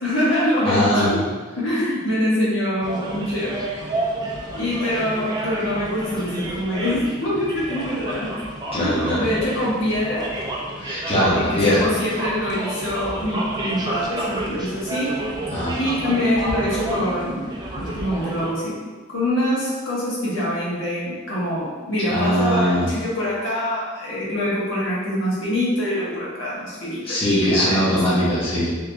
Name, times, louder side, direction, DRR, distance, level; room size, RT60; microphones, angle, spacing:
voice 1, 0.0-1.2 1.5-3.5 4.5-8.3 8.7-10.2 11.3-15.2 15.8-17.5 17.8-18.7 19.1-27.8, left 1 dB, 85° left, -8 dB, 1.4 m, -24 dB
voice 2, 0.6-1.1 8.7-9.2 10.8-11.8 15.5-15.7 22.1-22.9 27.0-28.7, equal, 30° left, -10 dB, 1.2 m, -20 dB
sound 1, 2.8-18.5, right 1 dB, 20° right, 0.5 m, -30 dB
3.6 x 2.9 x 3.4 m, 1.4 s
head